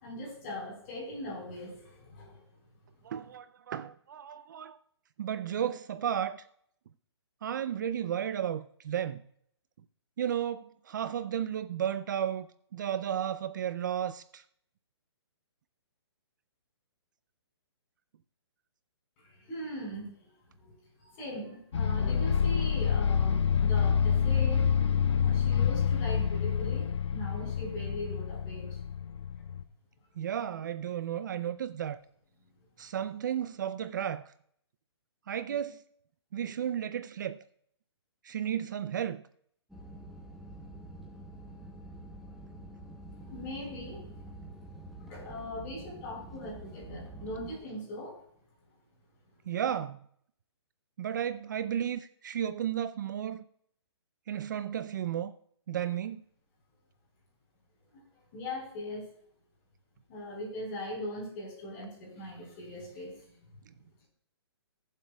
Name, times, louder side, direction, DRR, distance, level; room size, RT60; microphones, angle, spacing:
voice 1, 0.0-2.4 19.2-20.1 20.6-20.7 21.0-24.7 25.2-28.7 43.3-44.1 45.1-48.2 57.9-58.0 58.3-59.1 60.1-63.1, left 1 dB, 30° left, 4.5 m, -40 dB
voice 2, 3.0-4.8 5.2-6.4 7.4-9.2 10.2-12.5 12.7-14.4 30.2-32.0 32.8-34.3 35.3-35.8 36.3-37.4 38.2-39.2 49.5-50.0 51.0-53.4 54.3-55.3 55.7-56.2, right 9 dB, 45° right, 0.4 m, -33 dB
sound 1, 21.7-29.6, left 7 dB, 85° left, 0.6 m, -27 dB
sound 2, 39.7-47.6, right 1 dB, ahead, 0.8 m, -47 dB
20.0 x 7.5 x 2.3 m
hypercardioid pair, 160°, 14 cm